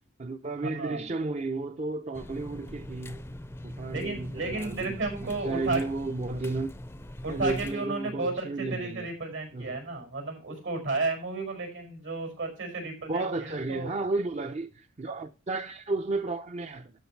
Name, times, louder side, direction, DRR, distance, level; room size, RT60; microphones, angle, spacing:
voice 1, 0.2-3.2 3.6-6.7 7.3-9.1 9.5-9.7 13.1-16.9, right 3 dB, 35° right, 0.6 m, -33 dB
voice 2, 0.8-1.1 3.9-5.8 7.2-14.0, right 3 dB, 80° right, 5.5 m, -33 dB
sound 1, 2.1-7.8, left 1 dB, 10° left, 0.5 m, -42 dB
12.5 x 5.1 x 4.5 m
head